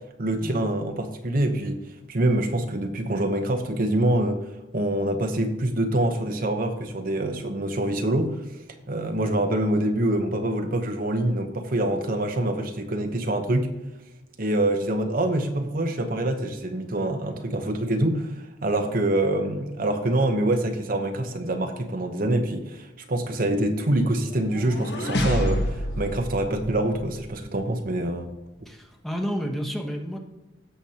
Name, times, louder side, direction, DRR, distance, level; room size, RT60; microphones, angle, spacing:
voice 1, 0.2-8.4 8.9-13.7 14.4-28.3, right 1 dB, 50° right, 5 dB, 0.9 m, -25 dB
sound 1, 24.3-27.4, equal, 60° left, 1.3 m, -28 dB
voice 2, 28.7-30.2, equal, ahead, 2 dB, 1.1 m, -30 dB
16.5 x 7.0 x 2.9 m, 1.1 s
head